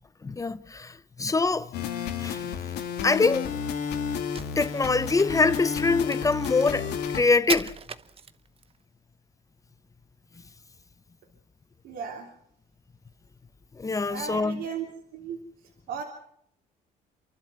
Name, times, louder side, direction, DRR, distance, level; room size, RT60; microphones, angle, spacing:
voice 1, 0.2-1.7 2.2-2.7 3.0-3.5 4.6-6.9 7.1-7.7 13.8-14.6, left 3 dB, 20° left, 0.7 m, -24 dB
sound 1, 1.7-7.2, left 7 dB, 80° left, 2.0 m, -31 dB
Crack, 4.2-8.8, right 6 dB, 35° right, 1.0 m, -39 dB
voice 2, 11.8-12.3 14.1-14.9 15.1-15.4 15.9-16.0, right 7 dB, 75° right, 3.2 m, -35 dB
28.5 x 12.0 x 8.0 m
cardioid pair, 110°, 17 cm